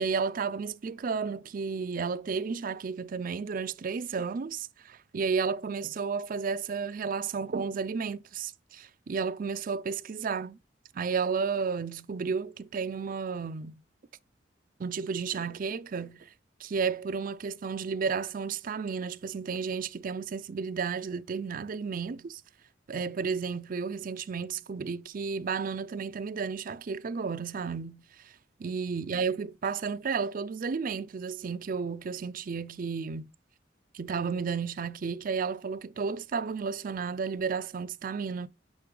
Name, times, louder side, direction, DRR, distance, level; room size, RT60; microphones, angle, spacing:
voice 1, 0.0-10.6 10.9-13.8 14.8-16.3 16.6-22.4 22.9-28.0 28.6-33.2 33.9-38.5, right 5 dB, 50° right, 0.4 m, -32 dB
6.7 x 5.3 x 3.8 m
head